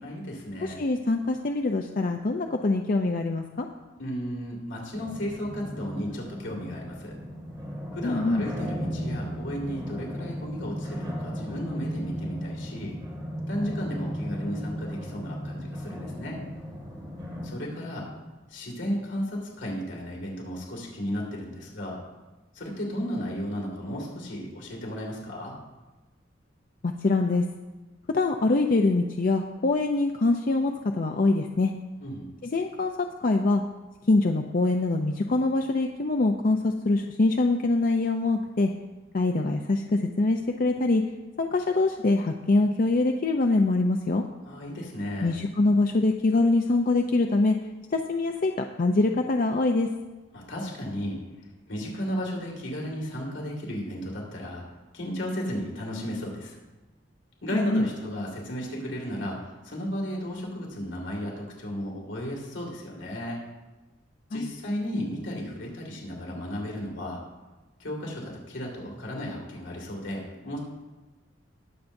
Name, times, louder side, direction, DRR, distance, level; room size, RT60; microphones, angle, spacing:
voice 1, 0.0-0.8 4.0-7.2 7.9-13.0 13.5-16.4 17.4-18.1 18.5-22.0 22.5-25.6 32.0-32.3 44.4-45.4 50.3-51.2 51.7-54.6 54.9-56.6 57.4-63.4 64.3-67.2 67.8-70.6, equal, 75° left, -2 dB, 2.2 m, -34 dB
voice 2, 0.6-3.7 8.0-8.4 26.8-27.4 28.1-31.7 32.4-33.6 34.1-38.7 39.1-41.0 41.4-44.2 45.2-47.6 47.9-48.5 48.8-49.9 57.5-57.9 64.3-64.5, left 2 dB, 45° left, 3 dB, 0.5 m, -24 dB
sound 1, 4.9-17.5, equal, 20° right, 2.2 m, -35 dB
20.5 x 7.0 x 2.6 m, 1.2 s
head